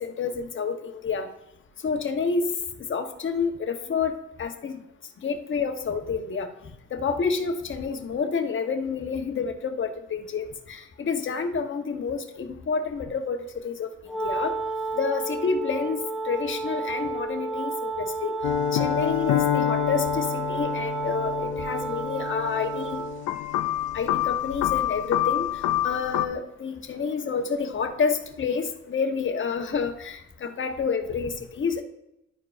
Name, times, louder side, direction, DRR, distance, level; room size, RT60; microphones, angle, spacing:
voice 1, 0.0-1.3 1.8-2.5 2.9-4.1 4.4-4.7 5.2-6.5 6.9-13.4 13.6-13.9 14.2-14.5 15.0-18.4 18.7-23.0 23.9-25.4 25.8-31.8, left 5 dB, 40° left, 5 dB, 1.0 m, -29 dB
Wind instrument woodwind instrument, 14.1-23.3, right 3 dB, ahead, 0.6 m, -31 dB
sound 1, 18.4-26.3, left 13 dB, 80° left, 0.5 m, -27 dB
11.0 x 4.6 x 2.5 m, 0.84 s
cardioid pair, 90°, 30 cm